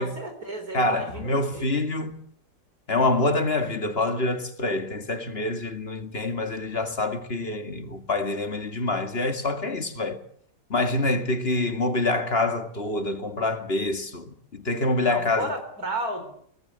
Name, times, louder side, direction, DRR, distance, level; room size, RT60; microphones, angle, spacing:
voice 1, 0.0-1.9 15.0-16.3, right 2 dB, 60° right, 4.6 m, -33 dB
voice 2, 0.7-2.2 2.9-10.2 10.7-15.6, left 2 dB, 35° left, 2.3 m, -26 dB
25.0 x 19.0 x 8.1 m
omnidirectional pair, 1.8 m